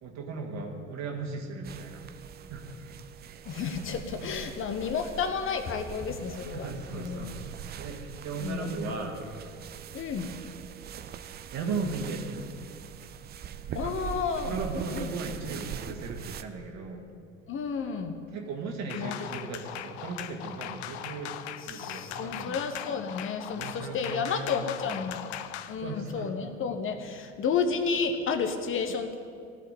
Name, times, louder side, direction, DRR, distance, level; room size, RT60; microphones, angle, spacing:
voice 1, 0.0-2.0 2.5-2.6 6.5-9.2 11.5-12.2 13.7-13.9 14.5-17.0 18.3-21.4 21.7-22.6 23.5-25.0 25.8-26.3, right 4 dB, 45° right, 2 dB, 2.0 m, -37 dB
sound 1, 1.6-16.4, right 8 dB, 25° right, 0.6 m, -42 dB
voice 2, 3.5-7.3 8.4-9.0 9.9-10.3 13.7-14.6 14.9-15.1 17.5-18.2 18.9-19.1 21.6-25.2 25.7-29.1, left 5 dB, 35° left, 7 dB, 1.0 m, -31 dB
sound 2, 18.9-25.8, left 11 dB, 60° left, 0.6 m, -39 dB
16.0 x 5.8 x 9.1 m, 2.3 s
figure-of-eight pair, 65°, 37 cm